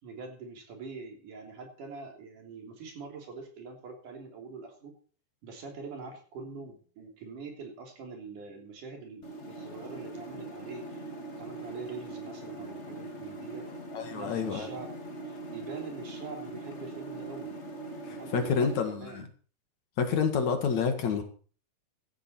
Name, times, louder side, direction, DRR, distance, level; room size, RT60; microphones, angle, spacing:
voice 1, 0.0-4.9 5.4-11.0 11.4-13.7 14.1-14.9 15.2-17.5 18.1-19.3, right 4 dB, 65° right, 3 dB, 4.7 m, -44 dB
sound 1, 9.2-18.8, right 2 dB, 25° left, 1.9 m, -41 dB
voice 2, 13.9-14.7 18.0-19.3 20.0-21.2, left 6 dB, 60° left, 6 dB, 3.0 m, -28 dB
16.5 x 12.5 x 4.4 m, 0.41 s
omnidirectional pair, 3.9 m